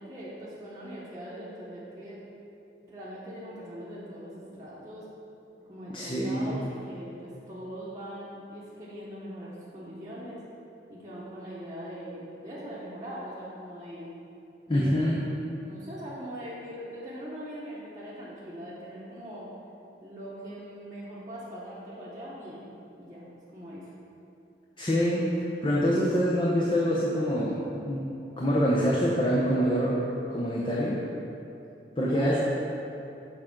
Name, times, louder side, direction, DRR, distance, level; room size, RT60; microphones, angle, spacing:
voice 1, 0.0-2.2 2.8-5.1 5.7-10.4 10.9-14.1 14.7-15.0 15.6-19.5 20.0-22.7 22.9-23.9 32.0-32.4, equal, 20° right, -9 dB, 1.0 m, -41 dB
voice 2, 5.9-6.6 14.7-15.2 24.8-25.2 25.6-28.0 28.4-30.0 30.3-31.0 32.0-32.4, equal, 25° left, -5 dB, 0.7 m, -25 dB
6.6 x 3.8 x 6.0 m, 2.8 s
head